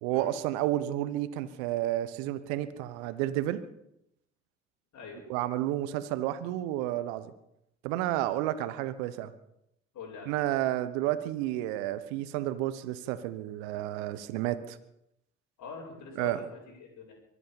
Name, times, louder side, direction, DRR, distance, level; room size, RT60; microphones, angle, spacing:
voice 1, 0.0-3.6 5.3-7.3 7.8-9.3 10.3-14.8 16.2-16.4, right 14 dB, 80° right, 14 dB, 1.1 m, -31 dB
voice 2, 9.9-10.4 15.6-17.1, left 5 dB, 60° left, -4 dB, 5.5 m, -44 dB
23.5 x 8.7 x 7.1 m, 0.80 s
hypercardioid pair, 55°, 32 cm